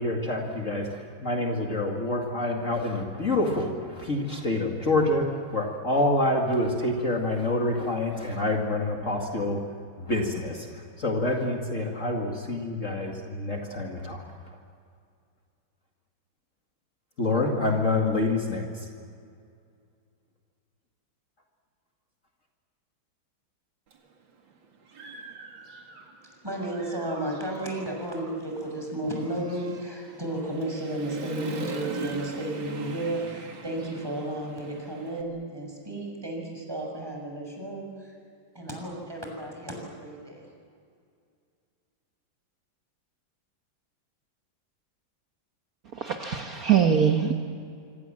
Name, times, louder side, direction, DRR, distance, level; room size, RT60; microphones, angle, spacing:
voice 1, 0.0-9.6 10.0-14.2 17.2-18.9, left 2 dB, 40° left, 1 dB, 2.5 m, -27 dB
Human voice / Motorcycle, 23.9-24.0 24.5-26.3 26.6-35.2, right 4 dB, 75° right, 2.9 m, -41 dB
voice 2, 26.2-38.2 38.5-40.5, right 1 dB, 10° right, 0 dB, 6.6 m, -33 dB
voice 3, 45.9-47.3, right 8 dB, 50° right, 3 dB, 1.7 m, -23 dB
26.0 x 26.0 x 7.5 m, 2.3 s
omnidirectional pair, 2.1 m